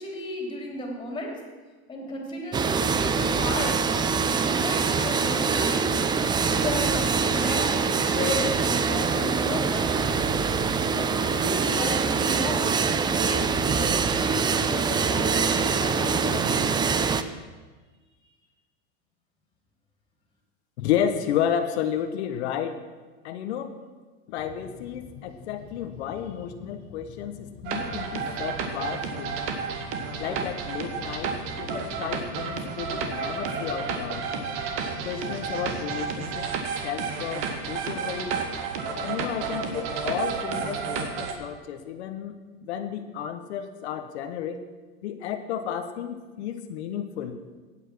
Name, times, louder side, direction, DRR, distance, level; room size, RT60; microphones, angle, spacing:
voice 1, 0.0-1.3 1.9-3.9 4.3-5.9 6.5-10.2 10.9-12.8 13.1-16.9, left 1 dB, 15° left, 1 dB, 3.2 m, -34 dB
sound 1, 2.5-17.2, right 5 dB, 15° right, 0.4 m, -24 dB
voice 2, 20.8-22.8 23.2-23.8 24.3-29.4 30.2-34.3 35.0-36.5 36.8-38.4 39.0-42.3 42.6-44.6 45.0-47.4, left 9 dB, 90° left, 7 dB, 1.2 m, -32 dB
sound 2, 24.4-36.5, left 7 dB, 45° left, 1.4 m, -46 dB
sound 3, 27.6-41.3, right 5 dB, 55° right, 1.9 m, -31 dB
15.5 x 9.2 x 6.1 m, 1.3 s
supercardioid pair, 145°, 32 cm